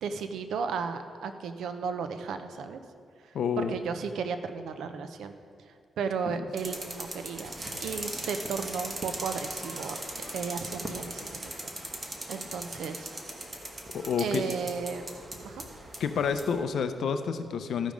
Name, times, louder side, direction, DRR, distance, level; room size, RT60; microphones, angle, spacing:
voice 1, 0.0-2.8 3.6-5.3 6.0-7.5 7.8-10.0 10.3-11.7 12.3-13.1 14.2-15.1 15.4-15.7, right 5 dB, 90° right, 8 dB, 0.6 m, -34 dB
voice 2, 3.3-3.8 6.3-6.4 13.9-14.5 16.0-17.9, left 6 dB, 70° left, 9 dB, 0.6 m, -29 dB
sound 1, 6.6-16.6, right 1 dB, 25° right, 1.1 m, -39 dB
14.0 x 5.1 x 5.1 m, 2.4 s
wide cardioid pair, 140°, 0 cm